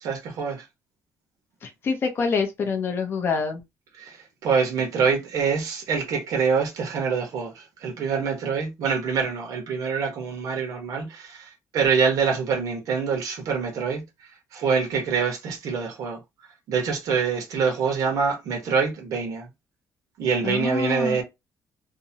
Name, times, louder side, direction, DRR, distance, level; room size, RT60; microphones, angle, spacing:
voice 1, 0.0-0.6 4.0-14.0 14.5-16.2 16.7-19.5 20.2-21.2, right 5 dB, 65° right, 1.0 m, -25 dB
voice 2, 1.6-3.6 20.4-21.2, left 5 dB, 35° left, 0.6 m, -26 dB
2.8 x 2.1 x 2.7 m
cardioid pair, 170°, 6 cm